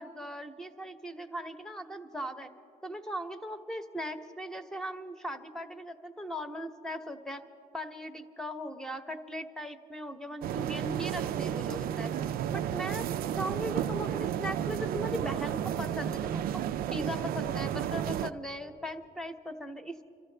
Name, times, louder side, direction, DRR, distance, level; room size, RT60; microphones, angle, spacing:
voice 1, 0.0-2.5 2.8-7.4 7.7-12.2 12.5-16.6 16.9-20.0, equal, 5° left, 8 dB, 0.9 m, -39 dB
sound 1, 10.4-18.3, right 10 dB, 60° right, 0.4 m, -32 dB
27.5 x 13.5 x 3.3 m, 2.4 s
cardioid pair, 110°, 17 cm